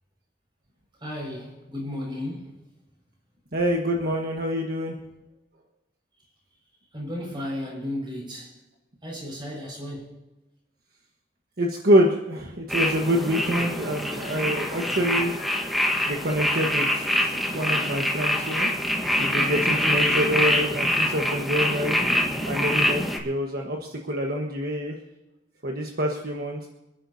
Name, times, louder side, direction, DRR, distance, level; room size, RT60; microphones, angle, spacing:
voice 1, 1.0-2.6 6.9-8.6 9.0-10.2 14.1-15.9, left 1 dB, 25° right, -2 dB, 5.7 m, -35 dB
voice 2, 3.5-4.9 11.6-15.3 16.1-18.7 19.2-22.0 22.4-25.0 25.6-26.7, equal, 55° right, 1 dB, 1.4 m, -26 dB
sound 1, 12.7-23.2, left 1 dB, ahead, 1.5 m, -25 dB
27.5 x 10.5 x 2.8 m, 0.99 s
head